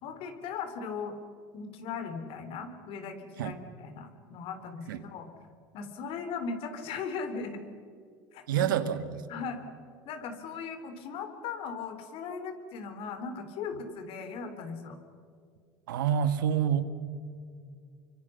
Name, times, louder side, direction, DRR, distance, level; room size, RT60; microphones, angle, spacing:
voice 1, 0.0-1.2 1.5-5.3 5.7-7.7 8.3-8.7 9.3-9.6 10.1-15.0, left 5 dB, 60° left, 8 dB, 3.5 m, -38 dB
voice 2, 8.5-9.2 15.9-16.8, right 9 dB, 85° right, 10 dB, 1.6 m, -27 dB
29.5 x 24.5 x 5.8 m, 2.2 s
hypercardioid pair, 85°, 11 cm